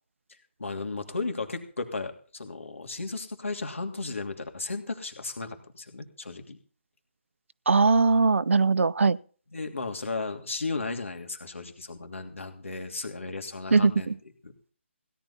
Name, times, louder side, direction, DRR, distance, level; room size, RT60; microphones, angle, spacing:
voice 1, 0.6-6.6 9.5-14.1 14.4-14.5, left 3 dB, 80° left, 2.8 m, -35 dB
voice 2, 7.7-9.2 13.7-14.1, right 4 dB, 75° right, 0.6 m, -21 dB
17.0 x 10.5 x 4.2 m
figure-of-eight pair, 150°, 7 cm